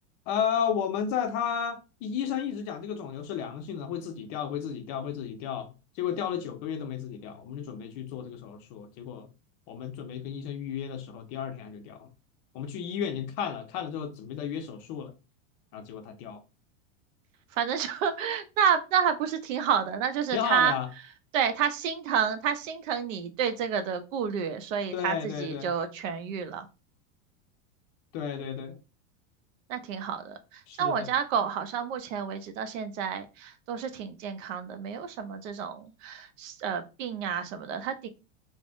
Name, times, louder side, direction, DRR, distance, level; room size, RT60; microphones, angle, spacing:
voice 1, 0.3-9.3 9.7-12.1 12.5-15.1 15.7-16.4 20.3-20.9 24.9-25.7 28.1-28.8 30.7-31.1, left 8 dB, 40° left, 0.5 m, -33 dB
voice 2, 17.5-20.7 21.3-26.7 29.7-38.1, right 8 dB, 75° right, 0.6 m, -29 dB
3.4 x 2.1 x 2.5 m
supercardioid pair, 140°, 39 cm